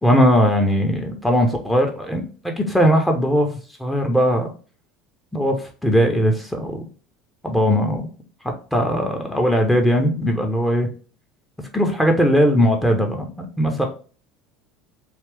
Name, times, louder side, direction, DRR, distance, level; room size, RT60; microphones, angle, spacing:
voice 1, 0.0-4.5 5.3-6.8 7.4-8.1 8.4-10.9 11.6-13.9, equal, 5° left, 2 dB, 0.7 m, -19 dB
3.2 x 2.9 x 3.2 m, 0.38 s
figure-of-eight pair, 70°, 0 cm